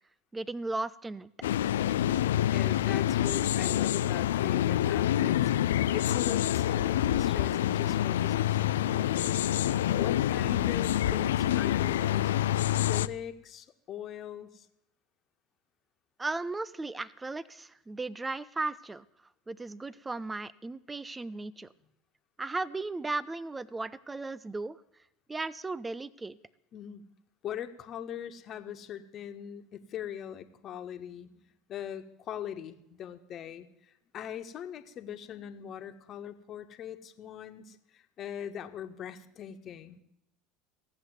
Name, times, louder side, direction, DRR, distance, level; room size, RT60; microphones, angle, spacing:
voice 1, 0.3-1.3 16.2-19.1 19.5-21.7 22.4-24.8 25.3-26.4, right 3 dB, 15° right, 19 dB, 0.8 m, -36 dB
sound 1, 1.4-13.1, left 12 dB, 75° left, 0.5 m, -27 dB
voice 2, 2.5-5.5 5.9-14.7 26.7-27.1 27.4-40.0, left 9 dB, 45° left, 8 dB, 1.6 m, -41 dB
16.0 x 8.2 x 9.7 m, 0.82 s
hypercardioid pair, 75°, 0 cm